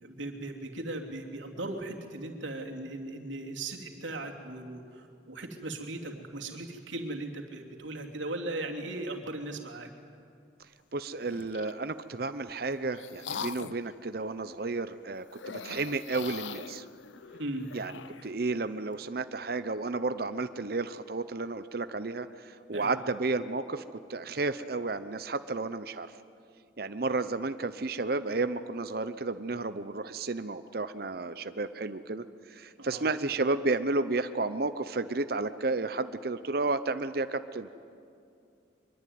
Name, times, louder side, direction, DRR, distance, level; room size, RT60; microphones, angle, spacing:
voice 1, 0.0-9.9 17.3-17.7 22.7-22.9 32.8-33.1, right 2 dB, 85° right, 2 dB, 2.9 m, -38 dB
voice 2, 10.9-16.8 17.7-26.1 26.8-37.8, right 3 dB, 50° right, 11 dB, 0.7 m, -32 dB
sound 1, 11.2-11.8 12.5-13.9 15.3-18.3, left 6 dB, 80° left, 0.6 m, -42 dB
23.5 x 23.0 x 9.4 m, 2.4 s
head